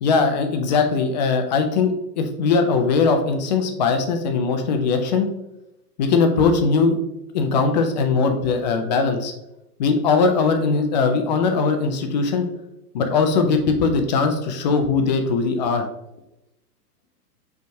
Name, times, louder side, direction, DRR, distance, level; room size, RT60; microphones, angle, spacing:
voice 1, 0.0-5.3 6.0-7.0 7.3-9.3 9.8-12.5 12.9-15.9, left 4 dB, 30° left, 6 dB, 0.4 m, -20 dB
5.1 x 3.5 x 2.6 m, 0.87 s
figure-of-eight pair, 105°, 48 cm